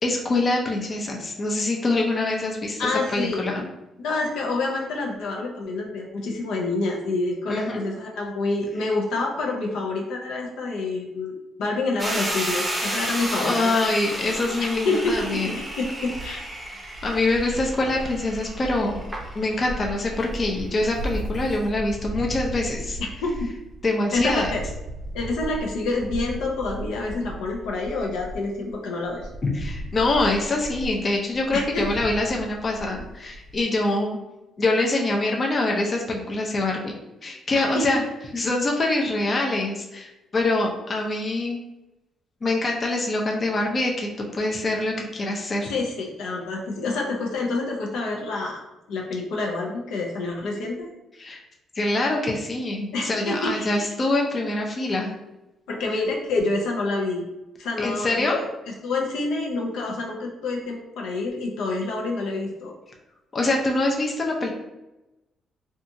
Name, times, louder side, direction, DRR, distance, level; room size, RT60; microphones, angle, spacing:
voice 1, 0.0-3.7 7.5-7.8 13.4-15.6 17.0-19.0 19.3-23.0 23.8-24.5 29.4-34.2 34.6-36.9 37.2-38.0 38.3-41.6 42.4-45.7 51.2-51.4 51.8-55.1 57.8-58.4 63.3-64.5, left 2 dB, 35° left, 0 dB, 0.5 m, -24 dB
voice 2, 2.8-3.4 4.0-13.7 14.8-15.4 15.8-16.4 23.2-23.5 24.1-24.6 25.1-29.3 31.5-31.9 37.5-38.0 45.6-48.6 48.9-50.9 52.9-53.9 55.7-57.2 57.6-58.5 58.8-62.7, left 3 dB, 85° left, -1 dB, 0.5 m, -27 dB
sound 1, 12.0-21.6, right 1 dB, 10° right, 0.7 m, -32 dB
sound 2, 14.7-28.8 29.0-33.6, right 1 dB, 65° right, 0.4 m, -37 dB
2.7 x 2.3 x 2.6 m, 0.97 s
cardioid pair, 90°, 0 cm